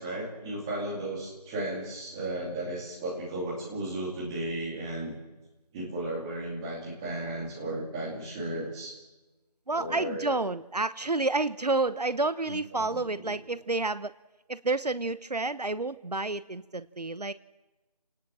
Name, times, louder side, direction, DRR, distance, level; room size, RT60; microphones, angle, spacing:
voice 1, 0.0-5.1 5.7-8.9 9.7-10.4 12.4-13.3, right 1 dB, 5° right, -5 dB, 2.5 m, -35 dB
voice 2, 9.7-14.1 14.5-17.3, right 3 dB, 70° right, 15 dB, 0.9 m, -29 dB
28.0 x 18.5 x 7.5 m, 1.1 s
figure-of-eight pair, 170°, 21 cm